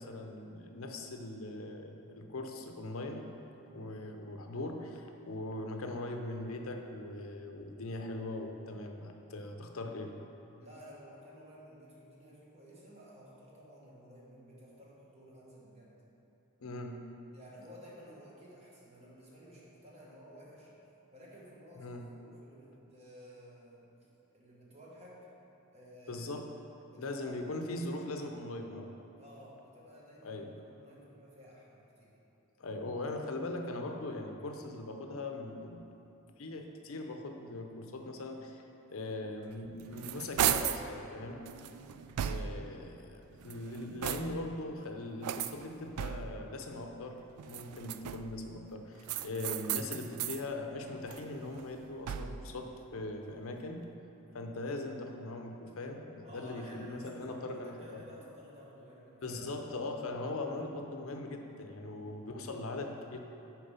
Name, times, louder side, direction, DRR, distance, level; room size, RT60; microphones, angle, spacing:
voice 1, 0.0-3.3 3.7-10.1 16.6-17.0 21.8-22.1 26.1-26.5 27.0-29.0 30.2-30.5 32.6-36.0 36.4-41.4 42.2-53.8 54.3-58.0 59.2-63.2, left 2 dB, 65° left, 4 dB, 0.6 m, -40 dB
voice 2, 10.6-16.0 17.3-20.7 21.1-23.9 24.3-25.3 25.7-26.3 26.9-27.4 29.2-32.2 41.5-42.1 56.2-59.4 61.8-62.3, equal, 30° right, -5 dB, 1.3 m, -54 dB
sound 1, 39.6-40.9 41.5-42.7 43.3-44.6 45.2-46.5 47.4-48.4 49.0-50.4 50.9-52.5, right 10 dB, 85° right, 0.3 m, -36 dB
6.7 x 4.8 x 5.6 m, 2.9 s
head